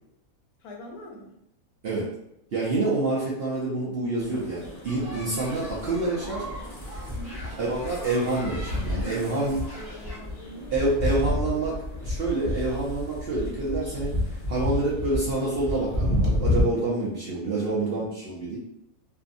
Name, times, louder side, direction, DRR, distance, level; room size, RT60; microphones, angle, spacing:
voice 1, 0.6-1.4 7.1-7.4 9.0-11.7 17.3-18.3, left 1 dB, 85° left, 1 dB, 1.1 m, -44 dB
voice 2, 2.5-6.5 7.4-9.6 10.7-11.8 12.0-14.1 14.5-18.6, right 2 dB, 65° right, -6 dB, 0.6 m, -27 dB
sound 1, 4.2-16.6, left 1 dB, 45° left, 0.4 m, -31 dB
sound 2, 4.9-10.2, equal, 15° right, 0.8 m, -41 dB
2.6 x 2.5 x 2.5 m, 0.81 s
omnidirectional pair, 1.6 m